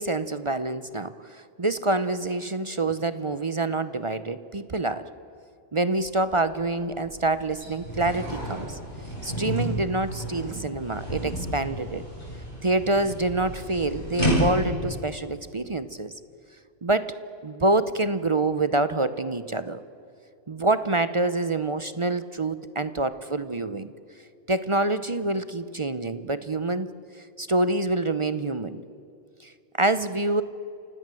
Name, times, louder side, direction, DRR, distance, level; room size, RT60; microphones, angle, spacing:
voice 1, 0.0-5.1 5.7-8.8 9.2-12.0 12.6-16.1 16.8-17.2 17.4-19.8 20.5-23.9 24.5-26.9 27.2-28.8 29.4-29.5 29.8-30.4, right 2 dB, 35° right, 13 dB, 0.6 m, -26 dB
sound 1, 6.1-6.2 6.5-14.8, equal, 35° left, 8.2 m, -31 dB
29.0 x 17.0 x 7.7 m, 2.7 s
omnidirectional pair, 1.3 m